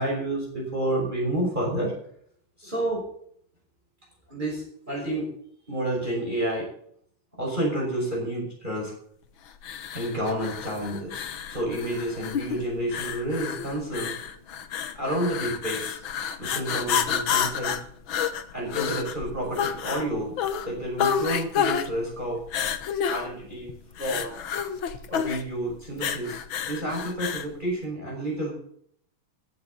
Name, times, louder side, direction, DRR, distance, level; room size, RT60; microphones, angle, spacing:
voice 1, 0.0-1.9 2.6-3.0 4.3-5.3 5.7-6.7 7.4-8.9 9.9-14.1 14.9-16.0 16.4-17.8 18.5-20.3 20.6-22.4 23.1-23.7 24.0-24.3 25.1-26.4 26.7-28.5, right 1 dB, 15° right, -2 dB, 6.1 m, -29 dB
sound 1, 9.6-27.5, left 8 dB, 70° left, 1.1 m, -30 dB
15.0 x 13.0 x 4.1 m, 0.64 s
omnidirectional pair, 3.8 m